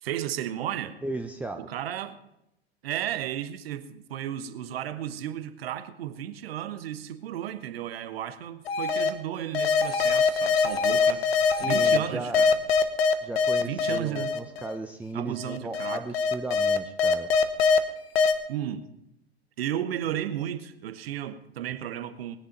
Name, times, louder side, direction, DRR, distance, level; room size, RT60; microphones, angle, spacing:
voice 1, 0.0-1.0 1.6-2.2 2.8-11.3 11.6-12.6 13.6-14.3 15.1-16.0 18.5-18.8 19.6-22.4, right 11 dB, 65° right, 1.2 m, -34 dB
voice 2, 1.0-1.7 11.1-12.4 13.2-17.3, right 2 dB, 5° right, 0.7 m, -36 dB
sound 1, 8.7-9.1 9.5-12.0 12.3-14.7 15.4-17.8 18.2-18.3, left 5 dB, 65° left, 1.4 m, -22 dB
19.0 x 10.0 x 5.3 m
figure-of-eight pair, 90°, 33 cm